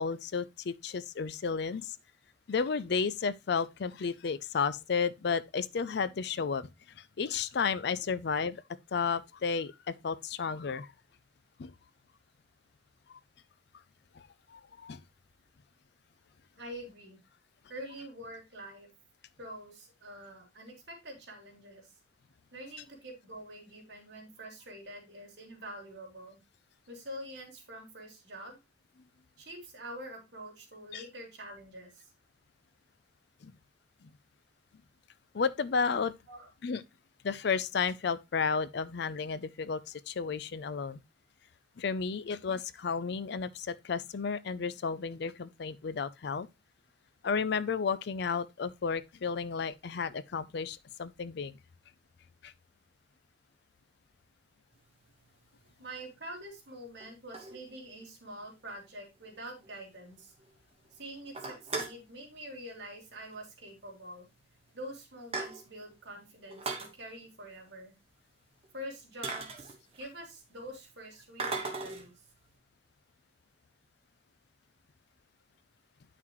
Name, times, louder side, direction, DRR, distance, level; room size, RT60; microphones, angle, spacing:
voice 1, 0.0-2.0 2.5-6.7 7.0-8.6 8.9-10.9 11.6-11.7 14.1-14.2 14.5-15.0 30.9-31.0 33.4-33.5 34.0-34.1 35.3-36.1 36.6-36.8 37.2-41.0 41.8-46.5 47.2-51.5 52.4-52.5, left 5 dB, 60° left, 0.5 m, -32 dB
voice 2, 16.6-17.2 17.7-18.9 19.4-21.9 22.5-26.4 26.9-28.6 29.4-32.0 36.3-36.5 55.8-60.3 60.9-64.3 64.7-67.9 68.7-72.1, right 1 dB, 60° right, 3.2 m, -46 dB
sound 1, 55.1-55.2 56.0-56.1 57.0-58.0 58.4-58.5 58.7-58.8 59.2-59.3 59.6-59.7 60.1-60.5 60.8-60.9 61.2-62.0 63.1-63.4 63.7-63.8 64.5-64.6 64.9-65.9 66.4-66.9 68.6-68.7 69.2-70.2 71.4-72.1, right 3 dB, 30° right, 1.3 m, -38 dB
9.3 x 5.9 x 3.0 m
head